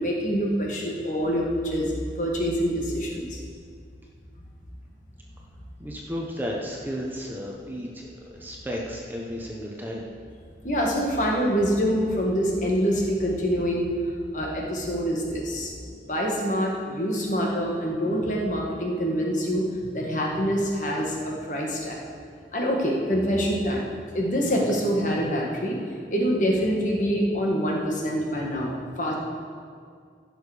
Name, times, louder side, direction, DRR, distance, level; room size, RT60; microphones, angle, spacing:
voice 1, 0.0-3.4 10.6-13.9 14.3-15.7 16.0-22.0 22.5-23.9 24.1-29.1, equal, 45° left, -2 dB, 1.7 m, -25 dB
voice 2, 5.8-10.1, equal, 10° right, -2 dB, 1.0 m, -33 dB
16.0 x 6.6 x 5.1 m, 2.1 s
head